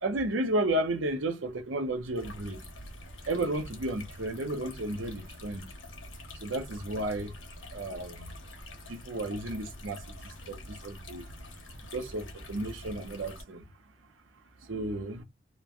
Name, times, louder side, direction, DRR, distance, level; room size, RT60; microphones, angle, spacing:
voice 1, 0.0-2.6 3.3-5.7 6.4-7.3 7.7-8.3 8.9-10.0 10.5-11.2 11.9-13.6 14.7-15.2, right 1 dB, 80° right, 0.7 m, -32 dB
sound 1, 2.1-13.4, left 1 dB, 85° left, 1.1 m, -46 dB
3.0 x 2.1 x 2.3 m
head